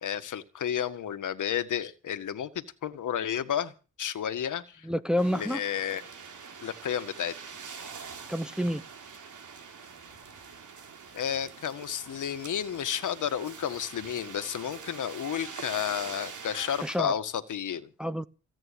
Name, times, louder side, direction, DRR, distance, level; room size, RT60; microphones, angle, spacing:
voice 1, 0.0-3.7 4.0-4.9 5.3-6.0 6.6-7.3 11.1-17.9, left 9 dB, 70° left, 1.7 m, -32 dB
voice 2, 4.8-5.6 8.3-8.8 16.8-17.2 18.0-18.2, equal, ahead, 0.8 m, -28 dB
sound 1, 5.2-17.0, right 6 dB, 75° right, 3.6 m, -44 dB
16.5 x 9.0 x 8.5 m
cardioid pair, 110°, 31 cm